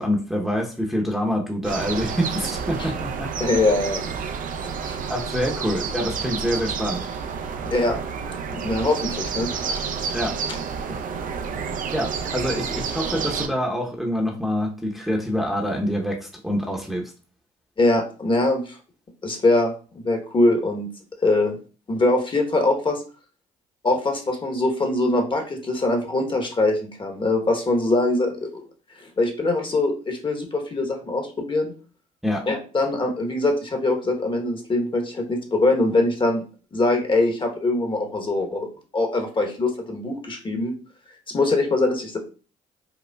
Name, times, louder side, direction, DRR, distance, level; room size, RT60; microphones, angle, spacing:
voice 1, 0.0-3.3 5.1-7.1 10.1-10.3 11.9-17.0 32.2-32.4, equal, ahead, -1 dB, 0.8 m, -26 dB
sound 1, 1.6-13.5, right 6 dB, 55° right, 0.5 m, -30 dB
voice 2, 3.4-4.3 4.8-5.0 7.7-8.0 8.5-9.8 17.8-18.8 19.2-19.7 20.0-20.9 21.2-21.6 21.9-23.0 23.8-28.6 29.0-31.7 32.5-36.4 36.7-38.7 38.9-40.7 41.3-42.2, left 2 dB, 30° left, 3 dB, 1.0 m, -22 dB
5.1 x 2.1 x 2.3 m, 0.37 s
supercardioid pair, 65°, 17 cm